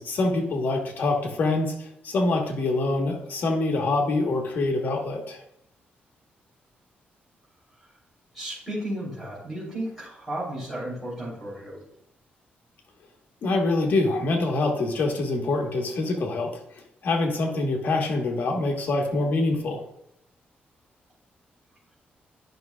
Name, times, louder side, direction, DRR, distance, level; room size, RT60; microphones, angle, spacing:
voice 1, 0.0-5.4 13.4-19.8, left 2 dB, 60° left, 2 dB, 1.3 m, -25 dB
voice 2, 8.3-11.8, right 1 dB, 5° right, -10 dB, 3.2 m, -34 dB
11.0 x 5.8 x 2.3 m, 0.75 s
wide cardioid pair, 160°, 4 cm